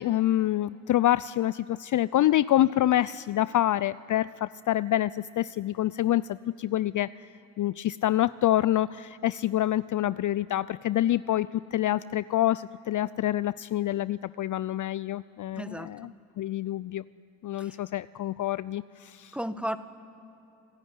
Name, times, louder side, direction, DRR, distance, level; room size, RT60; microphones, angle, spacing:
voice 1, 0.0-7.1 7.6-16.1 16.4-17.0 17.4-19.3, left 13 dB, 40° left, 18 dB, 0.6 m, -26 dB
voice 2, 15.5-15.9 17.6-17.7 19.3-19.8, equal, ahead, 11 dB, 1.7 m, -33 dB
27.0 x 17.0 x 9.6 m, 2.9 s
hypercardioid pair, 50°, 47 cm